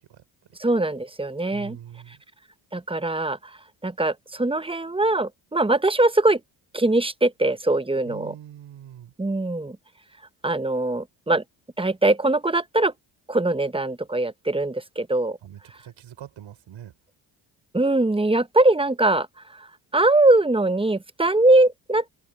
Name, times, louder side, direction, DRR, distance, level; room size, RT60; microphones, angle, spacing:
voice 1, 0.6-1.8 2.7-3.4 3.8-6.4 6.7-8.3 9.2-9.8 10.4-11.4 11.8-12.9 13.3-15.4 17.7-19.3 19.5-19.7 19.9-22.0, right 2 dB, 10° right, 1.1 m, -21 dB
voice 2, 1.5-2.2 8.0-9.1 15.4-16.9, right 11 dB, 70° right, 5.5 m, -43 dB
open air
supercardioid pair, 60°, 48 cm